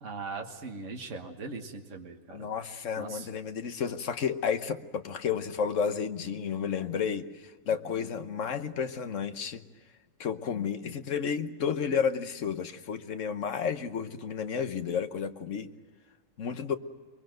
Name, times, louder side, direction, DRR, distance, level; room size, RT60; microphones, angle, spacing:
voice 1, 0.0-2.5 3.0-3.3, right 4 dB, 60° right, 3 dB, 1.9 m, -40 dB
voice 2, 2.3-9.6 10.2-15.7 16.4-16.7, left 7 dB, 65° left, 9 dB, 1.3 m, -31 dB
23.5 x 22.5 x 7.8 m, 1.4 s
omnidirectional pair, 1.4 m